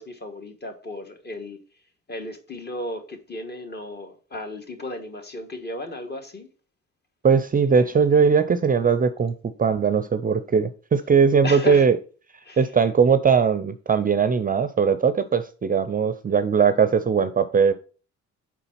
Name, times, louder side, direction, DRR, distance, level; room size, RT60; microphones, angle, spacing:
voice 1, 0.0-1.6 2.1-6.5 11.4-11.9 12.4-12.6, left 1 dB, 35° left, 1.4 m, -34 dB
voice 2, 7.2-12.0 12.6-17.7, right 6 dB, 30° right, 0.5 m, -20 dB
4.8 x 3.9 x 5.7 m
cardioid pair, 90°, 30 cm